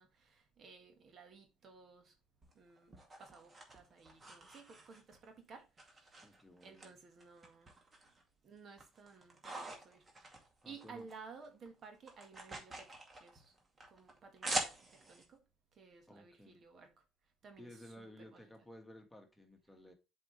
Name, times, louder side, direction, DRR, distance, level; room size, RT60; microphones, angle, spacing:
voice 1, 0.0-2.1 2.5-6.3 6.6-7.8 8.4-10.1 10.6-13.5 13.9-15.4 15.7-16.9 17.4-18.5, right 5 dB, 45° right, 1.6 m, -56 dB
sound 1, 2.4-5.3 5.8-6.9 7.2-8.2 8.6-11.2 11.4-15.3, right 2 dB, 30° right, 2.2 m, -45 dB
voice 2, 6.2-7.0 10.6-11.1 16.1-16.6 17.6-19.9, left 1 dB, 5° left, 1.7 m, -56 dB
7.6 x 4.7 x 3.3 m
supercardioid pair, 80°, 0 cm